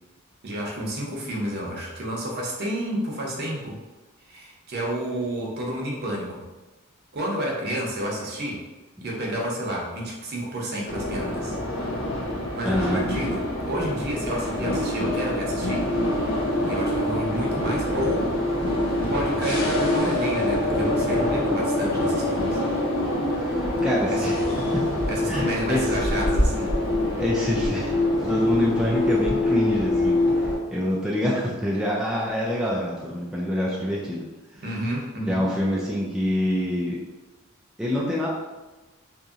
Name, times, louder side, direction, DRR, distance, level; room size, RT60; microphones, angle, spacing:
voice 1, 0.4-3.8 4.3-6.4 7.1-8.6 9.0-11.5 12.5-15.9 16.6-18.3 19.1-22.6 24.1-24.3 25.1-26.7 34.6-35.4, equal, 50° right, -2 dB, 0.7 m, -30 dB
sound 1, 10.9-30.6, left 1 dB, 80° left, 0.6 m, -25 dB
voice 2, 12.6-13.0 23.3-24.8 25.3-26.0 27.1-34.2 34.6-34.7 35.3-37.0 37.8-38.3, left 1 dB, 5° right, -5 dB, 0.3 m, -26 dB
2.9 x 2.6 x 2.4 m, 1.1 s
head